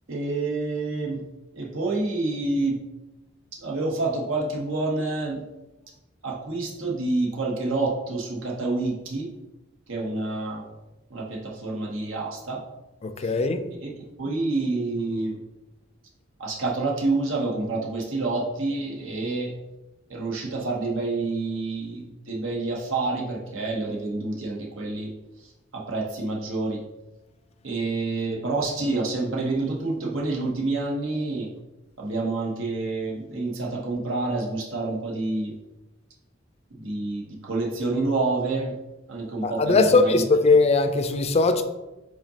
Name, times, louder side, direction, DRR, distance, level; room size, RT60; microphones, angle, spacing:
voice 1, 0.1-1.2 1.5-2.8 3.6-5.4 6.2-9.3 9.9-10.6 11.1-12.6 13.2-13.3 13.8-13.9 14.2-15.4 16.4-19.5 20.1-25.1 25.7-26.8 27.6-31.5 32.0-35.5 36.7-38.7 39.1-40.2, right 3 dB, 80° right, -2 dB, 0.9 m, -28 dB
voice 2, 13.0-13.6 39.4-41.6, left 3 dB, 30° left, 8 dB, 0.4 m, -20 dB
5.0 x 3.8 x 2.8 m, 1.0 s
head